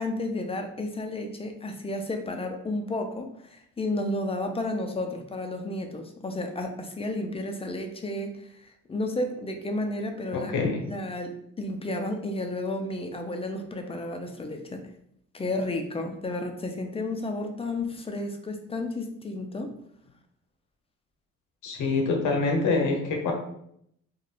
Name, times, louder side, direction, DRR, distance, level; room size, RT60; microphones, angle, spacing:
voice 1, 0.0-10.5 10.9-14.8 15.3-19.8, left 2 dB, 20° left, 5 dB, 0.4 m, -32 dB
voice 2, 10.3-10.8 21.6-23.3, left 3 dB, 80° left, 2 dB, 0.8 m, -25 dB
2.5 x 2.4 x 3.4 m, 0.72 s
cardioid pair, 90°, 30 cm